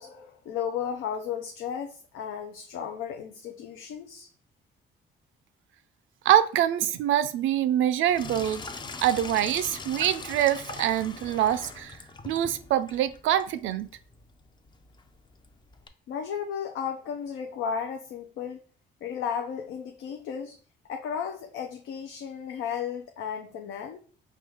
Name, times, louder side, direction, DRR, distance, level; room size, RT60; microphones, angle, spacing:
voice 1, 0.0-4.3 16.1-18.6 19.0-20.6 20.9-24.0, left 7 dB, 85° left, 0.5 m, -34 dB
voice 2, 6.3-8.6 9.0-12.0 12.2-13.9, right 11 dB, 80° right, 0.4 m, -25 dB
Sink (filling or washing), 8.0-15.9, left 3 dB, 25° left, 0.4 m, -42 dB
4.6 x 2.3 x 3.4 m
cardioid pair, 90°, 20 cm